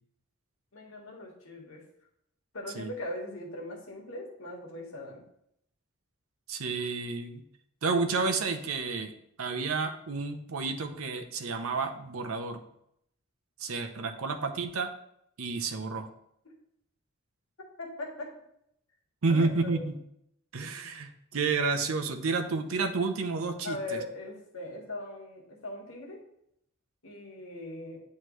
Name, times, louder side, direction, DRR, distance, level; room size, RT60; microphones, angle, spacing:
voice 1, 0.7-1.8 2.5-5.2 17.8-18.3 19.3-19.8 23.6-26.2 27.0-28.0, left 1 dB, 80° left, -1 dB, 1.5 m, -40 dB
voice 2, 6.5-7.4 7.8-9.1 9.4-12.6 13.6-14.9 15.4-16.1 19.2-19.9 20.5-24.0, right 4 dB, 85° right, 7 dB, 0.7 m, -30 dB
9.2 x 3.2 x 3.1 m, 0.75 s
head